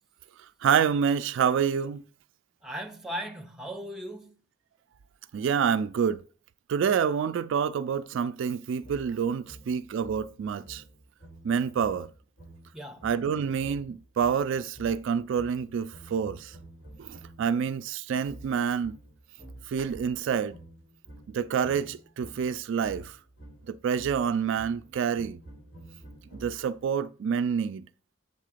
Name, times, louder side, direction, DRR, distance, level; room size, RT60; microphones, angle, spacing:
voice 1, 0.6-2.0 5.3-6.2 6.7-10.8 11.4-12.1 13.0-16.5 17.0-19.0 19.7-20.5 21.3-23.2 23.7-25.4 26.4-27.8, right 7 dB, 65° right, 0.3 m, -27 dB
voice 2, 2.6-4.3 12.7-13.1, equal, 5° right, 0.7 m, -38 dB
sound 1, 8.8-17.6 18.2-26.9, right 1 dB, 65° left, 3.5 m, -50 dB
7.2 x 3.7 x 4.9 m
head